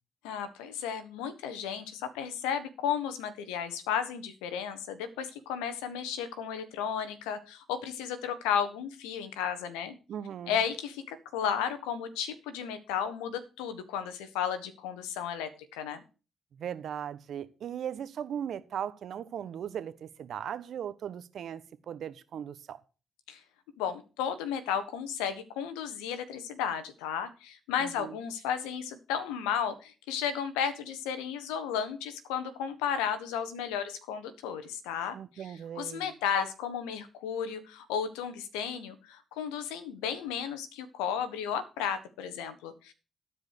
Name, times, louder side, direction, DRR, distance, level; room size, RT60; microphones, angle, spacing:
voice 1, 0.2-9.9 10.5-16.0 23.3-23.4 23.8-35.2 35.8-42.9, left 8 dB, 90° left, 1.3 m, -33 dB
voice 2, 10.1-10.6 16.5-22.8 27.8-28.2 35.1-36.1, right 9 dB, 70° right, 1.0 m, -38 dB
13.5 x 4.9 x 6.6 m
supercardioid pair, 50°, 0 cm